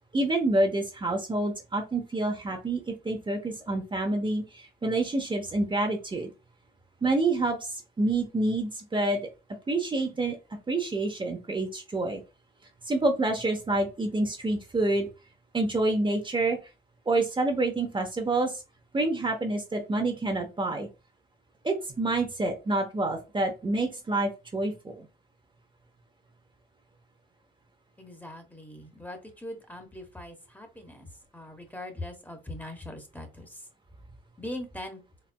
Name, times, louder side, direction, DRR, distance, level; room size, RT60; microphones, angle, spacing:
voice 1, 0.1-6.3 7.0-9.2 9.7-10.4 10.7-12.2 12.9-15.1 15.5-16.6 17.1-18.6 18.9-20.9 21.6-25.1, right 2 dB, 25° right, 3 dB, 0.9 m, -27 dB
voice 2, 28.0-31.1 31.3-33.7 34.4-35.0, left 1 dB, 10° left, 5 dB, 1.1 m, -41 dB
4.3 x 3.2 x 2.2 m, 0.28 s
cardioid pair, 90°, 20 cm